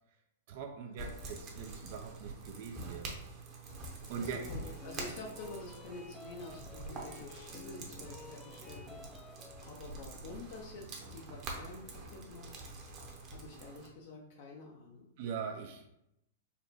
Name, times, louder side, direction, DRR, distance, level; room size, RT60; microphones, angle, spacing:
voice 1, 0.5-3.2 4.1-4.4 15.2-15.9, right 6 dB, 55° right, 4 dB, 0.5 m, -41 dB
sound 1, 1.0-13.9, right 2 dB, 35° right, 0.9 m, -46 dB
voice 2, 4.0-12.5 13.3-15.1, left 3 dB, 60° left, -1 dB, 0.6 m, -49 dB
sound 2, 4.2-9.7, left 5 dB, 15° left, 0.4 m, -53 dB
4.0 x 2.2 x 4.1 m, 0.82 s
hypercardioid pair, 120°, 0 cm